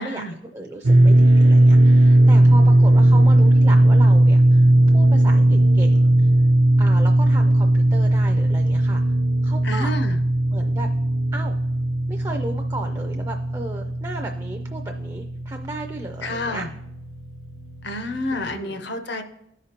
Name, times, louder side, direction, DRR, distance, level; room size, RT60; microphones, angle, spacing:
voice 1, 0.0-0.3 9.6-10.2 16.2-16.7 17.8-19.2, left 1 dB, 55° left, 8 dB, 0.6 m, -29 dB
voice 2, 0.5-6.3 6.8-9.1 9.4-9.9 10.5-10.9 11.3-11.5 12.1-16.7 18.3-18.9, right 2 dB, 20° right, 3 dB, 0.4 m, -35 dB
sound 1, 0.8-18.5, right 1 dB, 80° right, 0.6 m, -17 dB
13.5 x 5.0 x 2.9 m, 0.79 s
head